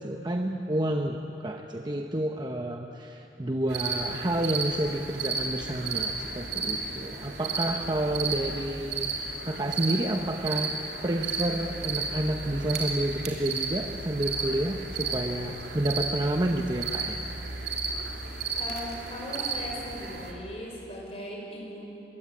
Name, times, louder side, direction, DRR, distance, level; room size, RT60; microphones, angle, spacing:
voice 1, 0.0-17.2, right 1 dB, 25° right, 3 dB, 0.9 m, -30 dB
sound 1, 3.7-20.3, right 4 dB, 70° right, 3.1 m, -33 dB
voice 2, 18.6-21.8, equal, 35° left, -2 dB, 5.9 m, -38 dB
23.0 x 22.5 x 8.7 m, 2.9 s
head